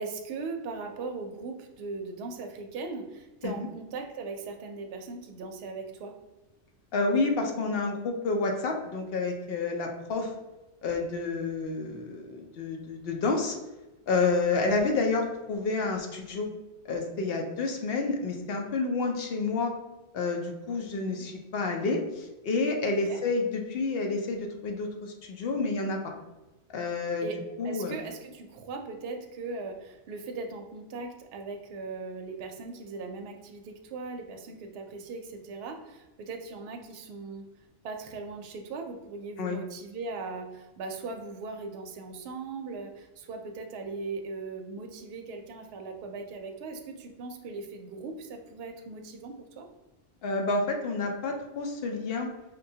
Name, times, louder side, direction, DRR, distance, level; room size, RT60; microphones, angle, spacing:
voice 1, 0.0-6.1 21.1-21.2 23.1-23.2 27.2-27.4 27.6-37.4 37.8-49.7, right 3 dB, 65° right, 4 dB, 0.7 m, -39 dB
voice 2, 6.9-10.3 10.8-13.6 14.1-16.5 16.8-19.7 20.1-26.1 26.7-27.3 27.6-28.0 39.4-39.6 50.2-52.3, left 3 dB, 65° left, 3 dB, 0.7 m, -29 dB
5.3 x 2.2 x 2.7 m, 1.1 s
omnidirectional pair, 1.2 m